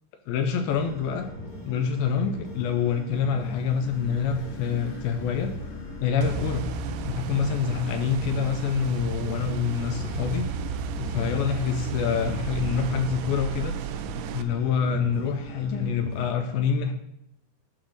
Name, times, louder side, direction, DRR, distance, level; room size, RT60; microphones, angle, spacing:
voice 1, 0.3-1.3 1.7-5.5 6.0-6.7 7.0-10.5 11.0-13.8 14.3-16.9, left 6 dB, 80° left, 6 dB, 2.1 m, -26 dB
sound 1, 0.7-16.3, equal, 35° left, 1.8 m, -41 dB
sound 2, 3.1-11.4, left 1 dB, 60° left, 2.5 m, -46 dB
sound 3, 6.2-14.4, right 5 dB, 85° right, 2.7 m, -33 dB
11.0 x 3.9 x 6.5 m, 0.80 s
omnidirectional pair, 4.9 m